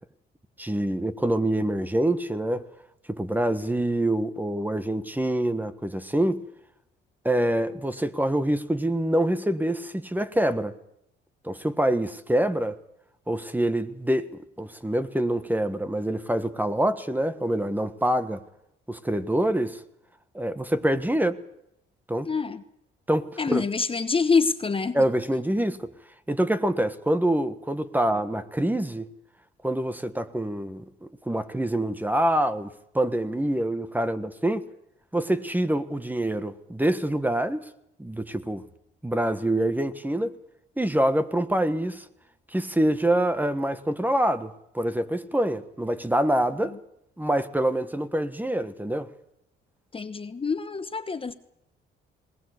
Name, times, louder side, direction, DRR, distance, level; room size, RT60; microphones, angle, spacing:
voice 1, 0.6-2.6 3.1-6.4 7.2-10.7 11.4-12.8 13.3-14.3 14.6-18.4 18.9-19.8 20.3-21.4 22.1-22.3 23.1-23.6 24.9-25.9 26.3-29.1 29.6-34.6 35.1-37.6 38.0-38.6 39.0-40.3 40.8-42.0 42.5-46.8 47.2-49.1, right 1 dB, 10° right, 1.4 m, -25 dB
voice 2, 22.3-22.6 23.4-25.0 49.9-51.3, left 4 dB, 25° left, 1.1 m, -26 dB
20.5 x 19.5 x 8.3 m
cardioid pair, 90°, 20 cm